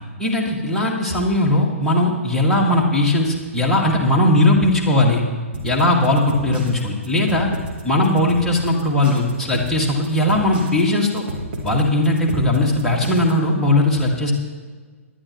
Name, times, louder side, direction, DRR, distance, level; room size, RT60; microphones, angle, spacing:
voice 1, 0.2-5.2 5.6-7.5 7.8-11.2 11.6-14.3, left 1 dB, 5° left, -4 dB, 1.8 m, -18 dB
sound 1, 5.5-13.5, equal, 45° right, 2.4 m, -31 dB
19.5 x 11.0 x 3.1 m, 1.5 s
figure-of-eight pair, 120°, 8 cm